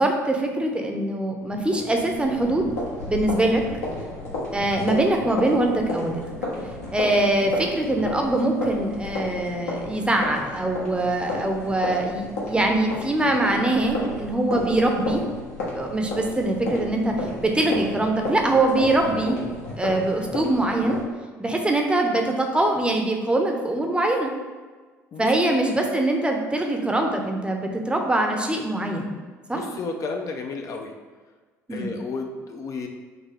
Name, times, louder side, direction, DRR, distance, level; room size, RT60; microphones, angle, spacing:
voice 1, 0.0-2.6 3.1-3.6 4.5-6.2 6.9-15.2 15.7-19.4 19.8-21.0 21.4-24.3 25.2-29.1 29.5-29.6 31.7-31.9, right 2 dB, 10° right, 2 dB, 0.7 m, -23 dB
sound 1, 1.4-21.0, left 2 dB, 75° left, 1.2 m, -33 dB
voice 2, 29.5-30.9 31.7-32.9, left 4 dB, 40° left, 3 dB, 0.5 m, -32 dB
5.9 x 2.8 x 3.3 m, 1.4 s
figure-of-eight pair, 55°, 9 cm